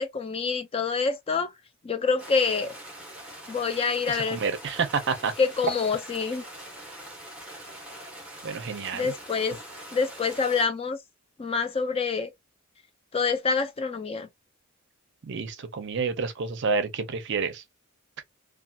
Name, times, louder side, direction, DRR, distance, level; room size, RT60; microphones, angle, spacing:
voice 1, 0.0-1.5 1.8-2.7 3.5-4.4 5.4-6.4 8.9-9.6 9.9-11.0 11.4-12.3 13.1-14.3, left 5 dB, 25° left, 0.4 m, -26 dB
sound 1, 2.2-10.7, right 1 dB, 5° right, 0.9 m, -43 dB
voice 2, 4.1-5.3 8.4-9.1 15.2-17.6, right 5 dB, 55° right, 0.5 m, -29 dB
2.7 x 2.3 x 2.3 m
head